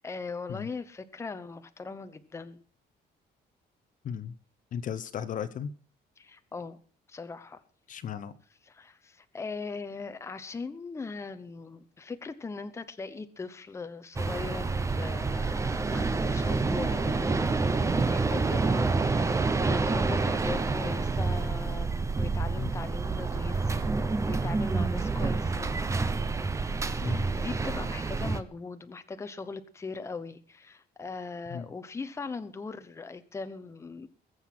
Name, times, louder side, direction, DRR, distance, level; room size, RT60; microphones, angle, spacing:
voice 1, 0.0-2.6 6.2-6.8 7.1-7.6 8.6-25.8 26.9-34.1, left 4 dB, 15° left, 10 dB, 0.9 m, -40 dB
voice 2, 4.7-5.7 7.9-8.3 22.6-22.7 27.0-27.3 31.5-31.6, left 8 dB, 50° left, 12 dB, 0.9 m, -35 dB
sound 1, 14.1-28.4, right 3 dB, 15° right, 0.8 m, -28 dB
20.5 x 8.1 x 6.0 m, 0.40 s
cardioid pair, 170°, 18 cm